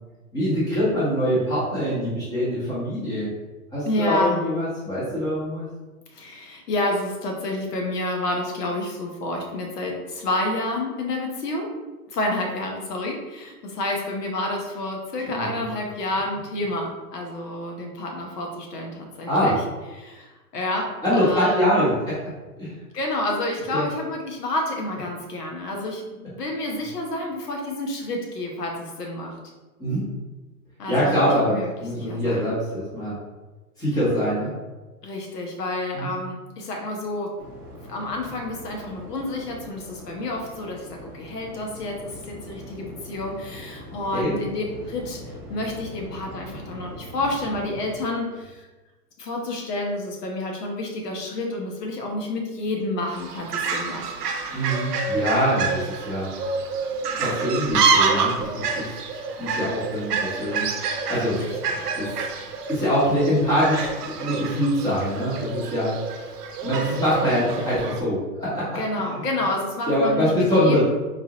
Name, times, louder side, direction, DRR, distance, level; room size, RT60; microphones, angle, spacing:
voice 1, 0.3-3.3 3.7-5.7 15.3-15.5 19.3-19.5 21.0-22.2 22.6-22.8 23.7-23.8 29.8-30.0 30.9-33.1 33.8-34.5 35.9-36.1 44.1-44.3 54.5-56.3 57.2-58.5 58.7-58.9 59.4-60.7 61.1-61.4 62.0-62.1 62.7-65.9 66.6-68.6 69.9-70.8, equal, 10° left, -9 dB, 0.9 m, -23 dB
voice 2, 3.8-4.4 6.1-11.7 12.1-19.5 19.9-21.7 22.9-29.4 30.8-32.5 35.0-37.3 37.8-48.7 49.2-54.1 61.4-61.9 68.7-70.8, left 2 dB, 80° left, 1 dB, 1.1 m, -29 dB
Waves surf, 37.4-48.0, left 1 dB, 25° right, 0.6 m, -41 dB
Fowl, 53.1-68.0, right 5 dB, 80° right, 0.7 m, -27 dB
3.8 x 2.4 x 2.9 m, 1.2 s
hypercardioid pair, 155°, 47 cm